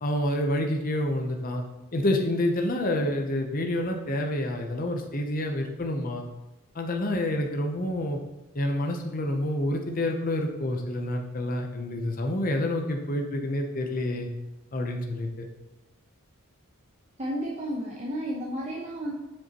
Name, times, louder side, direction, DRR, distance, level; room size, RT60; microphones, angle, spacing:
voice 1, 0.0-1.6 1.9-6.2 6.7-8.2 8.5-14.3 14.7-15.5, left 1 dB, 40° left, 3 dB, 0.7 m, -28 dB
voice 2, 17.2-19.1, equal, 30° right, -3 dB, 0.8 m, -32 dB
7.6 x 6.7 x 2.9 m, 1.0 s
head